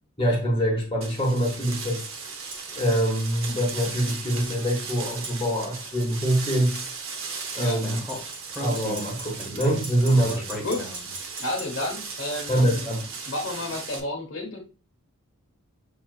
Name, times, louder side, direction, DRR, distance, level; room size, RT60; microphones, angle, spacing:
voice 1, 0.2-2.0 2.7-6.7 7.5-8.0 8.6-10.7 12.5-13.1, right 1 dB, 25° left, 1.0 m, -24 dB
sound 1, 1.0-14.0, right 5 dB, 65° right, 0.8 m, -37 dB
sound 2, 2.5-2.7 5.2-5.4 8.1-11.7, right 2 dB, 20° right, 0.6 m, -40 dB
Speech, 7.8-11.2, equal, ahead, 1.0 m, -37 dB
voice 2, 11.4-12.9 13.2-14.6, left 2 dB, 60° left, 1.1 m, -31 dB
6.1 x 2.7 x 2.4 m
head